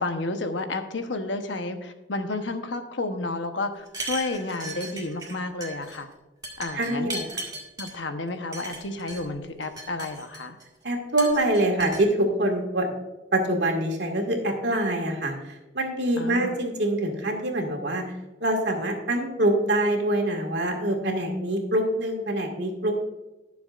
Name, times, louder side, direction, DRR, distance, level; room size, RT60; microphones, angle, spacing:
voice 1, 0.0-6.1 6.6-7.1 7.8-10.6 16.2-16.5, left 2 dB, 85° left, 7 dB, 1.1 m, -31 dB
sound 1, 3.9-5.4 5.6-6.0 6.4-7.9 8.5-9.2 9.6-10.6 11.2-12.0, right 1 dB, 20° right, 1.9 m, -36 dB
voice 2, 6.7-7.4 10.8-12.9 13.3-18.1 18.4-22.9, right 1 dB, 70° right, 2 dB, 2.1 m, -25 dB
20.5 x 7.0 x 2.6 m, 1.0 s
head